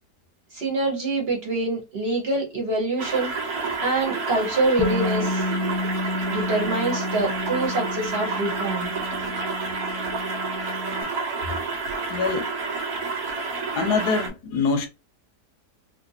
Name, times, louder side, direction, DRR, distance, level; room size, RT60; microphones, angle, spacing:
voice 1, 0.5-3.3 3.8-5.5 6.3-8.9, right 2 dB, 40° right, 1.2 m, -25 dB
sound 1, 3.0-14.3, right 4 dB, 65° right, 1.2 m, -29 dB
Bass guitar, 4.8-11.0, left 2 dB, 25° left, 0.7 m, -31 dB
voice 2, 12.1-12.5 13.8-14.9, left 4 dB, 75° left, 1.2 m, -24 dB
3.1 x 2.7 x 2.7 m
omnidirectional pair, 1.8 m